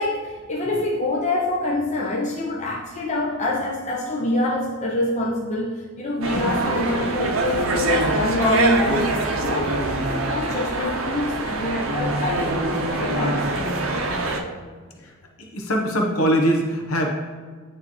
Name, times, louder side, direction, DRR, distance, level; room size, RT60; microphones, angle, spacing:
voice 1, 0.0-14.5, left 2 dB, 35° left, -3 dB, 0.6 m, -26 dB
sound 1, 6.2-14.4, right 2 dB, 70° right, 0.6 m, -24 dB
voice 2, 14.1-15.1 15.4-17.1, equal, 90° left, 1 dB, 1.0 m, -24 dB
9.4 x 3.2 x 3.1 m, 1.5 s
head